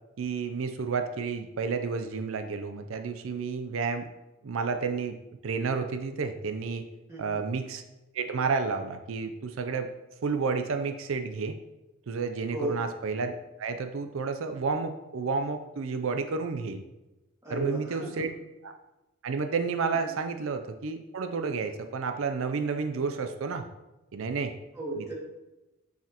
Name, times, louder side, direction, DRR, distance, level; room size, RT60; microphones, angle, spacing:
voice 1, 0.2-4.1 4.4-5.2 5.4-6.9 7.2-7.8 8.1-9.9 10.2-11.6 12.1-13.3 13.6-16.8 17.5-18.3 18.6-18.7 19.2-23.7 24.1-24.5, right 4 dB, 70° right, 7 dB, 0.5 m, -31 dB
voice 2, 7.1-7.4 12.5-12.8 17.4-18.3 19.9-20.2 24.7-25.1, right 2 dB, 15° right, -6 dB, 2.1 m, -35 dB
9.0 x 4.8 x 2.9 m, 1.0 s
head